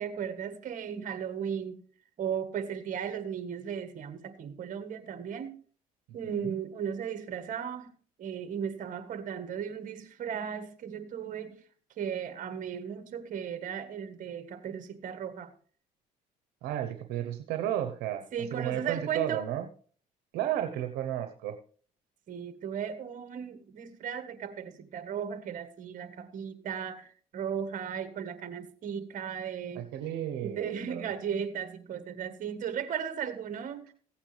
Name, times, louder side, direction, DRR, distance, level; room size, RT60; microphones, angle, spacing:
voice 1, 0.0-1.8 2.2-5.6 6.1-7.9 8.2-11.6 12.0-15.5 18.3-19.5 22.3-27.1 27.3-29.9 30.4-33.9, right 8 dB, 55° right, 1.5 m, -36 dB
voice 2, 6.2-6.5 16.6-18.2 18.5-19.7 20.3-21.6 29.7-31.1, right 11 dB, 85° right, 1.0 m, -33 dB
15.5 x 8.7 x 3.3 m
cardioid pair, 90°, 16 cm